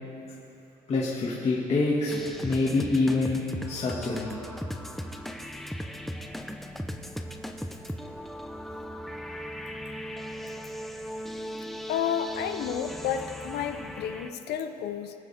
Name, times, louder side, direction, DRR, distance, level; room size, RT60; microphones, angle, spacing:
voice 1, 0.9-3.4 3.7-4.3, left 3 dB, 40° left, -7 dB, 2.0 m, -26 dB
sound 1, 2.1-14.3, equal, ahead, 0.7 m, -38 dB
voice 2, 11.9-15.1, left 9 dB, 75° left, 8 dB, 0.8 m, -31 dB
23.5 x 8.5 x 3.5 m, 2.9 s
cardioid pair, 110°, 17 cm